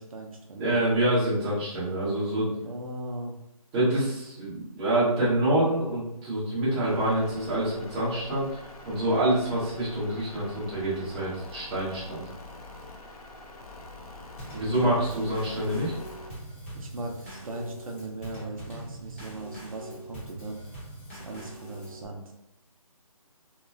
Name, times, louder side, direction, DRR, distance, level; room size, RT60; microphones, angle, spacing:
voice 1, 0.0-0.8 2.6-3.3 16.7-20.6 21.1-22.3, right 2 dB, 65° right, 1 dB, 0.5 m, -38 dB
voice 2, 0.5-2.5 3.7-8.5 8.8-12.2 14.5-16.0, right 1 dB, 10° right, -10 dB, 0.6 m, -26 dB
sound 1, 6.8-16.3, left 2 dB, 75° left, 0.6 m, -45 dB
Drum kit / Snare drum / Bass drum, 14.4-22.1, right 1 dB, 20° left, 0.8 m, -43 dB
2.9 x 2.1 x 2.5 m, 0.84 s
hypercardioid pair, 165°, 19 cm